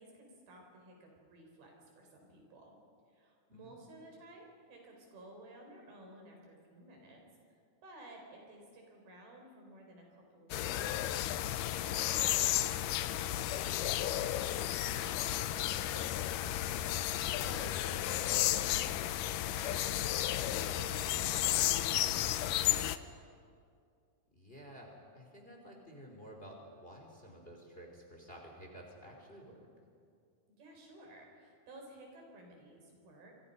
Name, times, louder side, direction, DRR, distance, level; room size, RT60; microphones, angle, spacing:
voice 1, 0.0-2.8 3.1-7.2 7.8-16.5 16.9-23.1 30.5-33.3, right 1 dB, 80° right, 1 dB, 6.3 m, -55 dB
sound 1, 10.5-23.0, left 13 dB, 80° left, 2.0 m, -33 dB
voice 2, 17.5-17.9 24.3-29.7, equal, 15° left, 1 dB, 3.2 m, -52 dB
27.5 x 24.5 x 5.5 m, 2.3 s
omnidirectional pair, 4.3 m